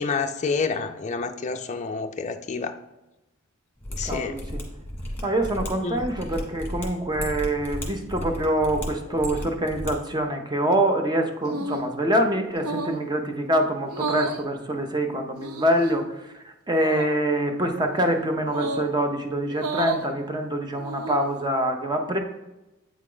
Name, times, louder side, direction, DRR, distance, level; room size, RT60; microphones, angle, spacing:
voice 1, 0.0-2.7 4.0-4.4 5.8-6.0, left 4 dB, 35° left, 5 dB, 0.4 m, -28 dB
Mechanisms, 3.8-9.9 10.2-10.3, left 1 dB, 10° left, 1.4 m, -34 dB
voice 2, 4.0-4.6 5.2-22.2, right 1 dB, 20° right, 4 dB, 0.7 m, -25 dB
sound 1, 11.4-11.9 12.6-13.0 13.9-14.4 15.4-15.9 16.7-17.1 18.5-18.9 19.5-20.0 20.7-21.3, right 2 dB, 80° right, 0.6 m, -32 dB
8.4 x 3.6 x 3.8 m, 1.0 s
head